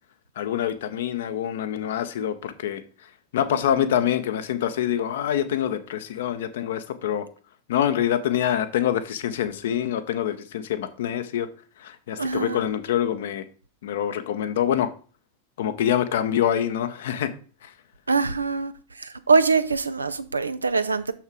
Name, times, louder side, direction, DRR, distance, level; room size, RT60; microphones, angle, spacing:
voice 1, 0.4-2.8 3.3-7.3 7.7-11.5 11.8-13.4 13.8-14.9 15.6-17.3 17.6-17.7, left 10 dB, 60° left, 0.8 m, -25 dB
voice 2, 12.2-12.7 18.1-18.7 19.0-21.1, right 4 dB, 80° right, 0.5 m, -23 dB
6.7 x 5.8 x 4.8 m
figure-of-eight pair, 90°, 0 cm